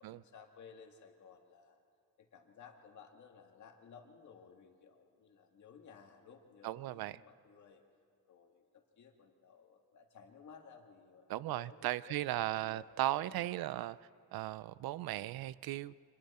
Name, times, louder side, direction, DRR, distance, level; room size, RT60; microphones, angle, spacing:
voice 1, 0.0-1.8 2.2-7.8 8.3-12.9 13.2-13.4, left 6 dB, 55° left, 3 dB, 2.0 m, -57 dB
voice 2, 6.6-7.2 11.3-14.0 14.3-15.9, right 15 dB, 80° right, 18 dB, 0.5 m, -37 dB
30.0 x 25.5 x 4.3 m, 2.4 s
cardioid pair, 170°, 36 cm